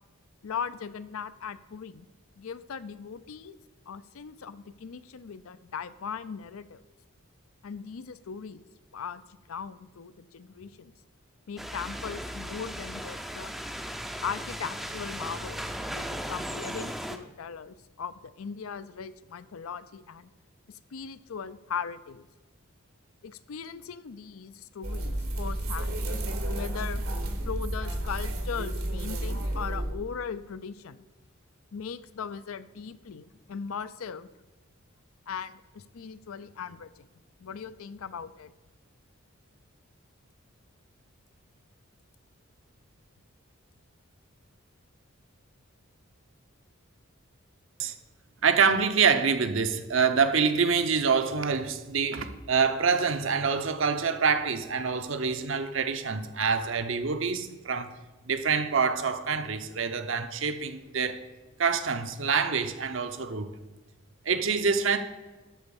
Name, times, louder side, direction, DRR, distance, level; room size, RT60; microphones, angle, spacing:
voice 1, 0.4-2.1 2.4-3.6 3.9-6.8 7.6-8.6 8.9-9.2 9.5-10.9 11.5-13.5 14.2-15.6 15.9-20.3 20.7-22.3 23.2-26.0 26.5-27.0 27.5-31.0 31.7-34.3 35.3-36.9 37.4-38.5, left 6 dB, 75° left, 0.5 m, -39 dB
Slight rain and storm (recorded from the window), 11.6-17.2, equal, ahead, 0.4 m, -37 dB
sound 1, 24.8-29.9, right 1 dB, 85° right, 1.8 m, -31 dB
voice 2, 48.4-57.9 58.3-61.2 61.6-63.5 64.2-65.0, right 5 dB, 65° right, 0.8 m, -26 dB
12.0 x 4.0 x 7.0 m
head